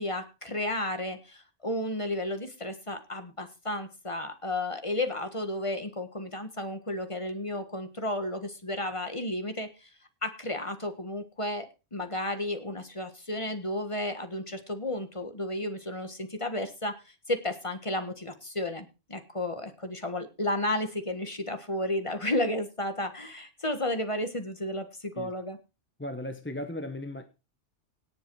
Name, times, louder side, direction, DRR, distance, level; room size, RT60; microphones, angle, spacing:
voice 1, 0.0-9.9 10.2-17.0 17.3-25.6, left 1 dB, 25° left, 1.7 m, -33 dB
voice 2, 26.0-27.3, left 1 dB, 10° left, 1.0 m, -36 dB
18.0 x 7.1 x 4.8 m
omnidirectional pair, 1.2 m